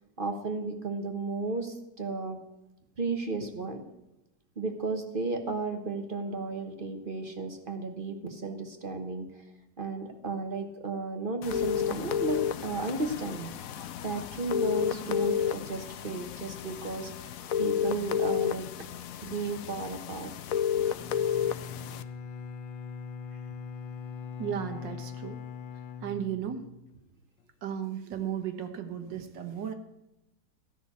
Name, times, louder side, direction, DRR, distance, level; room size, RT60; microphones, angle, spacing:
voice 1, 0.2-2.4 3.0-3.8 4.6-9.4 9.8-13.5 14.0-17.3 17.6-18.7 19.2-20.3 24.7-24.8, right 3 dB, 35° right, 5 dB, 1.1 m, -34 dB
sound 1, 11.4-22.0, left 9 dB, 70° left, 0.8 m, -31 dB
Bowed string instrument, 20.9-26.9, left 6 dB, 90° left, 1.5 m, -41 dB
voice 2, 24.4-25.4 26.0-26.7 27.6-29.7, right 9 dB, 75° right, 7 dB, 1.8 m, -35 dB
13.5 x 6.3 x 8.3 m, 0.91 s
omnidirectional pair, 2.0 m